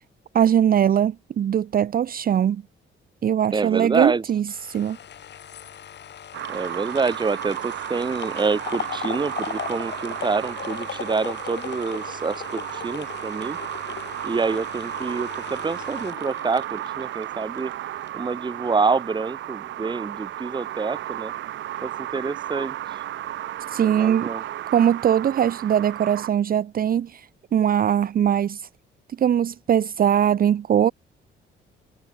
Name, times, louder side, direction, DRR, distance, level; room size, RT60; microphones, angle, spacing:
voice 1, 0.3-2.6 3.2-5.0 23.7-24.3 24.7-27.3 27.5-28.6 29.2-30.9, right 9 dB, 45° right, 0.6 m, -21 dB
voice 2, 3.5-4.2 6.5-13.6 14.2-17.7 18.1-21.3 21.8-23.0 23.8-24.4, right 4 dB, 20° right, 1.0 m, -27 dB
sound 1, 4.5-17.7 18.1-18.2, left 9 dB, 60° left, 3.3 m, -37 dB
sound 2, 6.3-26.3, right 13 dB, 70° right, 1.0 m, -34 dB
cardioid pair, 90°, 20 cm